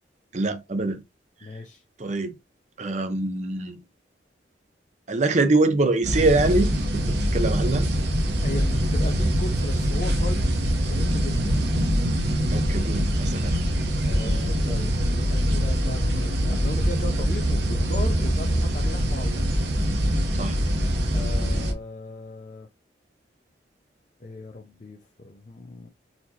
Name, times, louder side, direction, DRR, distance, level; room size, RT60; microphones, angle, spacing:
voice 1, 0.3-1.0 2.0-2.3 2.8-3.8 5.1-7.0 7.3-7.8 12.5-13.5 20.3-20.6, right 2 dB, 40° right, 0.6 m, -24 dB
voice 2, 1.4-1.8 8.3-10.5 10.8-11.6 14.0-19.4 21.1-22.7 24.2-25.9, left 2 dB, 45° left, 0.6 m, -37 dB
sound 1, 6.0-21.7, equal, 65° right, 1.0 m, -23 dB
4.2 x 2.9 x 2.8 m
head